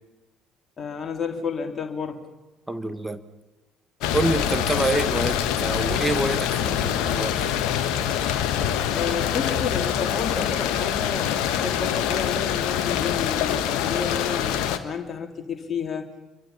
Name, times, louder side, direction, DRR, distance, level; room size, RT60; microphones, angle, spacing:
voice 1, 0.8-2.2 8.9-16.1, left 5 dB, 35° left, 3 dB, 3.1 m, -31 dB
voice 2, 2.7-3.2 4.1-7.7, right 2 dB, 10° right, 11 dB, 1.6 m, -27 dB
sound 1, 4.0-14.8, left 10 dB, 60° left, 1.4 m, -25 dB
28.0 x 24.0 x 5.7 m, 1.1 s
figure-of-eight pair, 55°, 0 cm